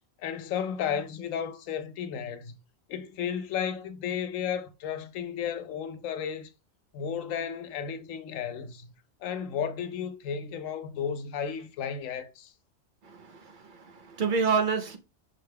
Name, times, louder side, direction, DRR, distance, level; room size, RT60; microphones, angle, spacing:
voice 1, 0.2-2.5 2.9-6.5 6.9-8.9 9.2-12.5, left 8 dB, 80° left, 1.0 m, -33 dB
voice 2, 13.0-15.0, right 5 dB, 60° right, 0.5 m, -28 dB
5.7 x 2.2 x 3.3 m
omnidirectional pair, 1.3 m